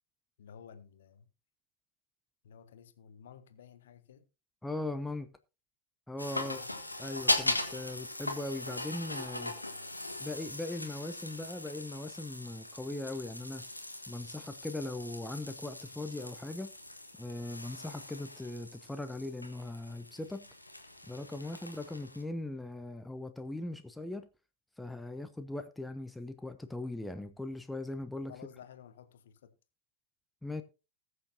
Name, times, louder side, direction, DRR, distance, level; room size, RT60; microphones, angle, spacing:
voice 1, 0.4-1.3 2.4-4.2 6.4-6.7 9.5-10.0 28.3-29.5, left 8 dB, 60° left, 1.1 m, -53 dB
voice 2, 4.6-5.3 6.1-6.6 7.0-9.6 10.2-13.6 14.1-16.7 17.2-20.5 21.1-24.3 24.8-28.3 30.4-30.6, left 2 dB, 5° left, 0.7 m, -39 dB
sound 1, 6.2-22.2, left 2 dB, 85° left, 1.4 m, -39 dB
20.0 x 6.7 x 2.7 m
figure-of-eight pair, 90°, 0 cm